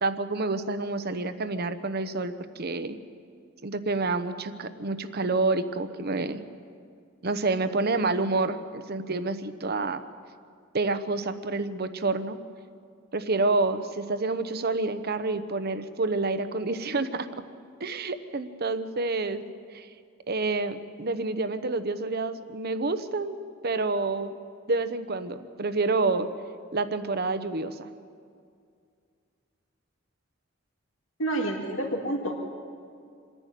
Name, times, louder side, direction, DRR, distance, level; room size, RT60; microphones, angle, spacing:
voice 1, 0.0-3.0 3.6-6.4 7.2-10.0 10.7-12.4 13.1-17.3 17.8-19.4 19.7-19.9 20.3-23.4 23.6-24.3 24.7-26.3 26.7-27.9, right 3 dB, 50° right, 11 dB, 1.0 m, -28 dB
voice 2, 31.2-32.3, right 1 dB, 75° left, 1 dB, 2.4 m, -28 dB
26.5 x 11.0 x 9.2 m, 2.3 s
head